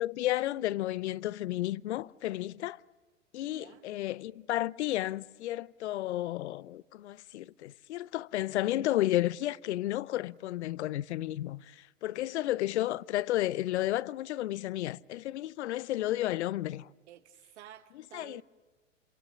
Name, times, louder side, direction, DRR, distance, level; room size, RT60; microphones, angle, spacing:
voice 1, 0.0-2.8 3.3-16.9 18.1-18.4, left 14 dB, 60° left, 0.7 m, -32 dB
voice 2, 3.6-3.9 17.1-18.4, right 12 dB, 60° right, 1.2 m, -52 dB
28.0 x 27.5 x 6.9 m
hypercardioid pair, 110°, 39 cm